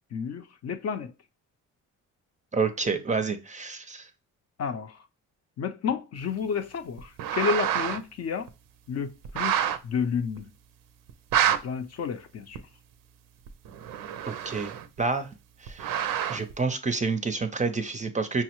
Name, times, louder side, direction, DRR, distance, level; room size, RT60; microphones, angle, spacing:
voice 1, 0.1-1.1 4.6-5.0 5.6-8.5 8.9-10.5 11.5-12.6, left 6 dB, 50° left, 0.5 m, -31 dB
voice 2, 2.5-4.1 14.3-15.3 15.6-16.0 16.3-18.4, right 4 dB, 25° right, 0.4 m, -29 dB
sound 1, 7.0-8.0 8.5-8.6 9.2-9.8 10.4-10.5 11.1-11.6 12.5-12.6 13.5-15.0 15.7-16.5, right 10 dB, 85° right, 0.5 m, -27 dB
5.5 x 2.0 x 2.9 m
cardioid pair, 85°, 33 cm